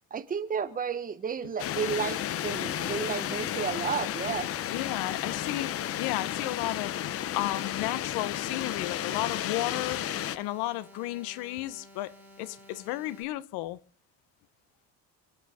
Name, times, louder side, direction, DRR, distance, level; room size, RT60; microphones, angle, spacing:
voice 1, 0.1-4.5, right 6 dB, 20° right, 1.1 m, -32 dB
sound 1, 1.6-10.4, left 11 dB, 35° left, 0.8 m, -33 dB
sound 2, 1.8-13.2, left 1 dB, 5° right, 5.1 m, -53 dB
voice 2, 4.7-5.7 6.0-10.0 10.4-13.8, left 16 dB, 80° left, 1.1 m, -33 dB
28.0 x 9.5 x 5.0 m
cardioid pair, 165°, 38 cm